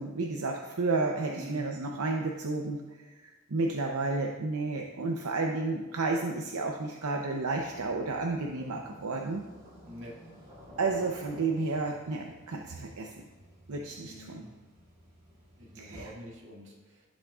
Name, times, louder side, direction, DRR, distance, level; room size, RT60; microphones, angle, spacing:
voice 1, 0.0-9.4 10.8-13.2 13.7-14.4 15.7-16.1, right 3 dB, 80° right, 2 dB, 0.7 m, -32 dB
voice 2, 1.3-1.7 9.9-10.2 14.0-14.5 15.6-17.0, right 1 dB, 60° right, -3 dB, 2.1 m, -45 dB
sound 1, 7.3-16.4, left 1 dB, 40° right, 2.8 m, -53 dB
15.0 x 6.3 x 2.4 m, 1.2 s
head